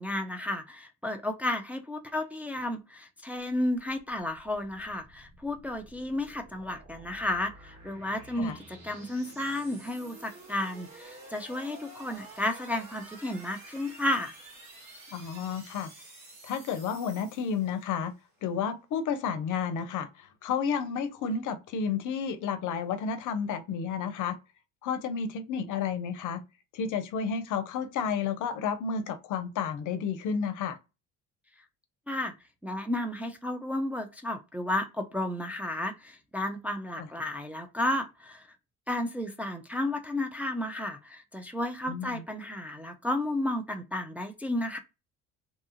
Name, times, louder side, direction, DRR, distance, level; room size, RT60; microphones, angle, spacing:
voice 1, 0.0-14.3 32.1-32.3 32.6-38.5 38.9-44.8, left 1 dB, 5° right, 0.4 m, -32 dB
sound 1, 3.7-18.1, right 2 dB, 55° right, 1.5 m, -50 dB
voice 2, 15.1-15.9 16.4-18.1 18.4-24.4 24.8-26.4 26.7-30.8 37.0-37.1 41.9-42.2, left 6 dB, 65° left, 0.6 m, -31 dB
2.7 x 2.3 x 2.7 m
supercardioid pair, 70°, 34 cm